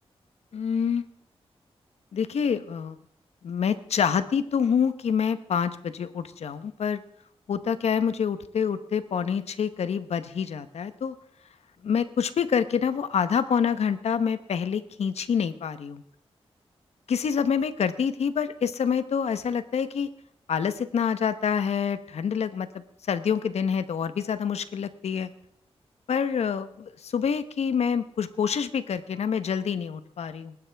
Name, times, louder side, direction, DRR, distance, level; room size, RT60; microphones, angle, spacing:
voice 1, 0.5-1.0 2.1-3.0 3.4-7.0 7.5-11.1 11.8-16.0 17.1-20.1 20.5-22.7 23.1-25.3 26.1-30.5, left 7 dB, 80° left, 12 dB, 1.0 m, -27 dB
20.5 x 11.5 x 3.5 m, 0.70 s
wide cardioid pair, 110°, 11 cm